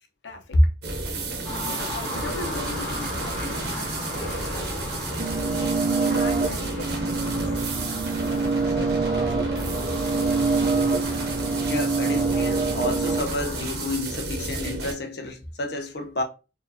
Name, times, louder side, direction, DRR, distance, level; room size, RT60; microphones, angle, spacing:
voice 1, 0.2-0.6 1.7-4.9 5.6-10.3, left 3 dB, 90° left, 0.9 m, -40 dB
sound 1, 0.8-14.9, right 2 dB, 60° right, 0.9 m, -32 dB
sound 2, 1.4-14.0, left 1 dB, 5° left, 1.8 m, -36 dB
sound 3, 5.2-13.2, right 4 dB, 35° right, 0.4 m, -25 dB
voice 2, 11.7-16.2, left 2 dB, 60° left, 0.7 m, -30 dB
4.3 x 2.7 x 2.7 m
head